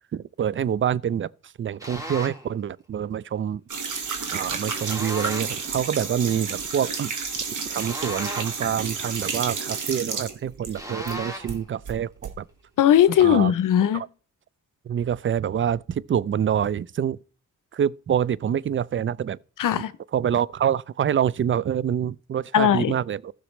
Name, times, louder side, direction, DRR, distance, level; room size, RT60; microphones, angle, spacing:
voice 1, 0.1-3.8 4.3-7.1 7.7-12.5 13.2-13.5 13.9-14.1 14.8-17.2 17.7-19.4 20.1-23.3, right 9 dB, 40° right, 0.4 m, -26 dB
sound 1, 1.8-2.5 4.8-5.6 7.8-8.7 10.7-11.6, equal, 10° right, 2.3 m, -36 dB
sound 2, 3.7-11.2 11.5-12.3, right 5 dB, 75° right, 1.6 m, -31 dB
voice 2, 12.8-14.1 19.6-19.9 22.5-22.9, left 10 dB, 80° left, 0.6 m, -18 dB
14.5 x 6.1 x 3.1 m
cardioid pair, 60°, 31 cm